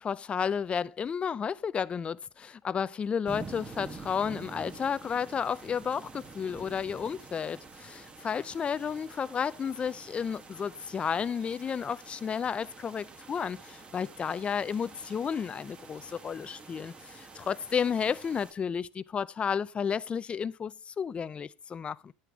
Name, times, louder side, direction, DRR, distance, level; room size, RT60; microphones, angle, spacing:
voice 1, 0.0-22.1, left 7 dB, 25° left, 0.5 m, -32 dB
sound 1, 3.2-18.5, right 4 dB, 25° right, 1.3 m, -48 dB
10.5 x 9.2 x 3.6 m
supercardioid pair, 105°, 4 cm